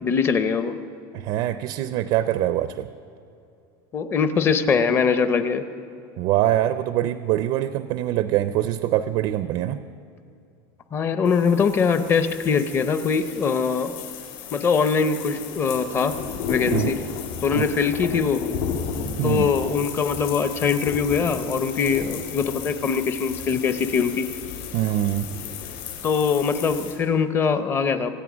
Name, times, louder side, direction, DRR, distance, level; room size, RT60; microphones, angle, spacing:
voice 1, 0.0-0.8 3.9-5.6 10.9-13.9 14.5-16.1 16.5-17.0 17.4-18.4 19.2-24.3 26.0-28.1, left 6 dB, 20° left, 11 dB, 0.6 m, -22 dB
voice 2, 1.1-2.9 6.2-9.8 16.7-16.9 17.6-17.7 19.2-19.5 24.7-25.3, right 13 dB, 40° right, 12 dB, 0.4 m, -23 dB
sound 1, 11.2-26.9, left 10 dB, 55° left, 4.2 m, -38 dB
Thunder / Rain, 15.2-26.9, left 5 dB, 85° left, 2.2 m, -33 dB
26.0 x 8.9 x 6.1 m, 2.6 s
supercardioid pair, 170°, 12 cm